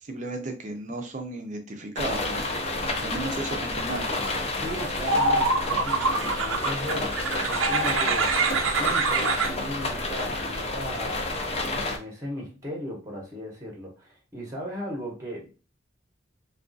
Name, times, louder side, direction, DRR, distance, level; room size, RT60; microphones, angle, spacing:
voice 1, 0.0-2.4 3.0-4.1, right 2 dB, 40° right, 0.6 m, -34 dB
sound 1, 2.0-12.0, left 2 dB, 30° left, 0.5 m, -30 dB
sound 2, 4.4-4.5 5.0-9.5, right 3 dB, 85° right, 0.6 m, -25 dB
voice 2, 4.6-7.1 7.5-8.3 8.7-11.3 11.8-15.6, equal, 15° right, 0.9 m, -37 dB
3.5 x 2.4 x 2.6 m
head